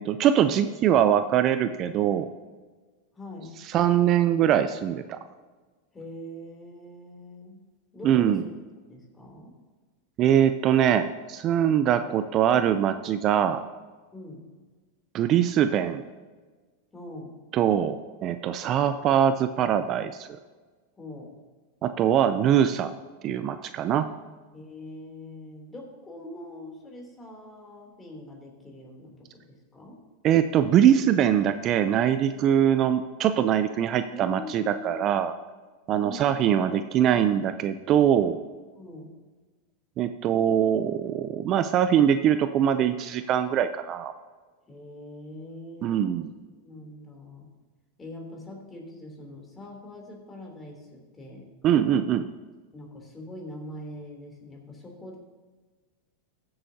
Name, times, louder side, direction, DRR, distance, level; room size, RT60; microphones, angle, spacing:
voice 1, 0.0-2.3 3.7-5.2 8.0-8.4 10.2-13.6 15.1-16.0 17.5-18.0 18.2-20.3 21.8-22.9 23.2-24.1 30.2-35.3 35.9-38.4 40.0-44.1 45.8-46.3 51.6-52.3, right 9 dB, 40° right, 10 dB, 0.5 m, -22 dB
voice 2, 3.1-3.7 5.9-8.5 8.9-9.6 14.1-14.5 16.9-17.5 21.0-21.4 24.5-30.0 34.1-35.1 36.0-36.7 38.7-39.2 44.7-46.2 46.6-47.5 48.0-51.5 52.7-55.2, left 1 dB, 20° left, 0 dB, 3.1 m, -43 dB
15.0 x 7.9 x 2.8 m, 1.3 s
hypercardioid pair, 110°, 0 cm